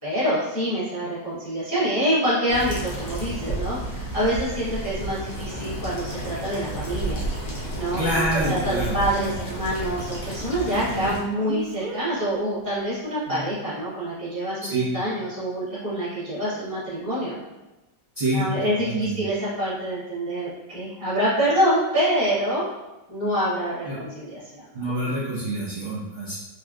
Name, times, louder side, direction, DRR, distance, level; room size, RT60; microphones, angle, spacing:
voice 1, 0.0-7.2 7.7-17.4 18.3-22.7 23.1-25.0, equal, 15° left, -10 dB, 0.7 m, -26 dB
sound 1, 2.5-11.2, right 1 dB, 55° left, 0.9 m, -31 dB
voice 2, 8.0-9.3 11.0-11.1 14.6-14.9 18.2-19.2 23.9-24.0 24.7-26.4, right 1 dB, 35° right, -11 dB, 0.9 m, -27 dB
Speech, 11.4-12.0 13.3-13.5, right 1 dB, 75° right, 0.7 m, -34 dB
3.3 x 2.8 x 2.4 m, 1.0 s
omnidirectional pair, 2.0 m